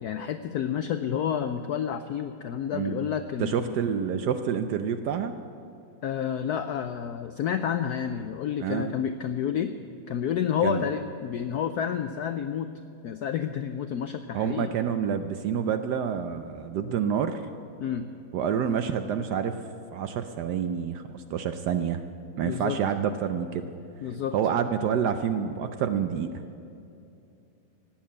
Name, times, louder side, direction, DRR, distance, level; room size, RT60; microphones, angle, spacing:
voice 1, 0.0-3.8 6.0-9.7 10.1-12.7 13.0-14.7 17.8-18.1 22.4-22.8 24.0-24.3, left 8 dB, 80° left, 9 dB, 0.8 m, -30 dB
voice 2, 2.7-3.0 3.4-5.3 8.6-8.9 10.6-10.9 14.3-17.4 18.3-19.6 19.9-22.0 22.4-23.7 24.3-26.4, right 8 dB, 70° right, 9 dB, 1.0 m, -28 dB
17.5 x 7.3 x 8.6 m, 2.6 s
omnidirectional pair, 2.2 m